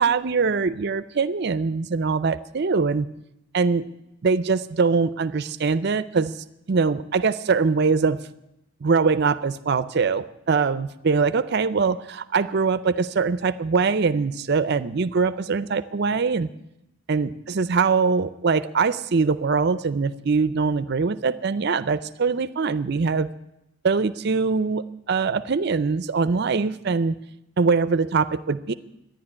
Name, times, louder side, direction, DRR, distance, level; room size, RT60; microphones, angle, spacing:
voice 1, 0.0-3.1 3.5-3.8 4.2-6.3 6.7-8.2 8.8-16.5 17.1-23.3 23.8-27.2 27.6-28.7, right 4 dB, 55° right, 14 dB, 0.5 m, -22 dB
12.0 x 10.5 x 9.9 m, 0.85 s
head